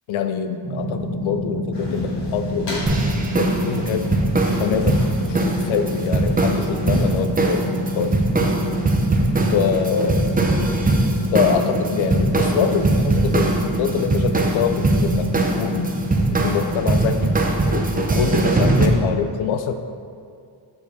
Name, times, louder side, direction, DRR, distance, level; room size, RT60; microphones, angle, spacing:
voice 1, 0.1-2.9 3.3-4.1 4.6-7.6 7.9-8.2 9.5-10.4 11.3-15.3 15.5-15.9 16.4-17.3 17.7-19.7, left 7 dB, 85° left, 9 dB, 0.6 m, -24 dB
sound 1, 0.6-16.6, left 1 dB, 40° right, 1.6 m, -28 dB
sound 2, 1.7-7.2, left 1 dB, 65° left, 1.5 m, -34 dB
sound 3, 2.9-18.9, right 2 dB, 20° right, 0.6 m, -21 dB
6.3 x 4.7 x 4.1 m, 2.3 s
cardioid pair, 95°, 46 cm